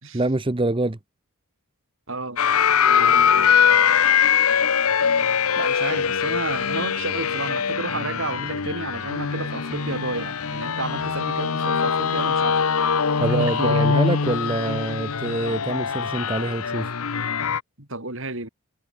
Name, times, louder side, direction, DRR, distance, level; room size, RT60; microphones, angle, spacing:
voice 1, 0.1-1.0 13.2-16.9, right 2 dB, 25° right, 0.8 m, -25 dB
voice 2, 2.1-2.4 2.9-3.9 5.6-12.7 13.3-13.9 17.8-18.5, right 2 dB, 60° right, 5.6 m, -31 dB
sound 1, 2.4-17.6, left 7 dB, 80° left, 0.9 m, -22 dB
head